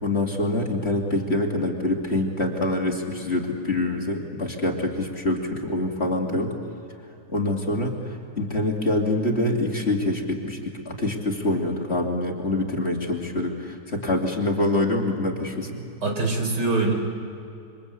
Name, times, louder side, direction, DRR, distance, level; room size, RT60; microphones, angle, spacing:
voice 1, 0.0-6.5 7.3-15.8, left 1 dB, 35° left, 0 dB, 3.0 m, -25 dB
voice 2, 16.0-16.9, right 3 dB, 60° right, 3 dB, 4.7 m, -23 dB
27.5 x 25.5 x 8.4 m, 2.7 s
omnidirectional pair, 2.0 m